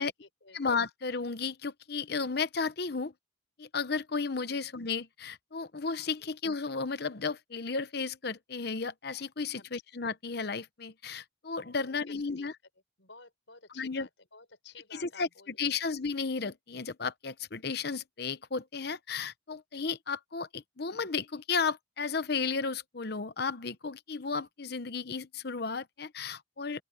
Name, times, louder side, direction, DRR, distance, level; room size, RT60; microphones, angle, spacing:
voice 1, 0.0-0.6 4.5-4.6 6.2-6.3 9.6-9.8 11.8-12.5 13.0-15.8, left 4 dB, 85° left, 5.3 m, -54 dB
voice 2, 0.5-3.1 3.6-12.5 13.8-14.1 14.9-26.8, left 4 dB, 55° left, 0.9 m, -34 dB
open air
head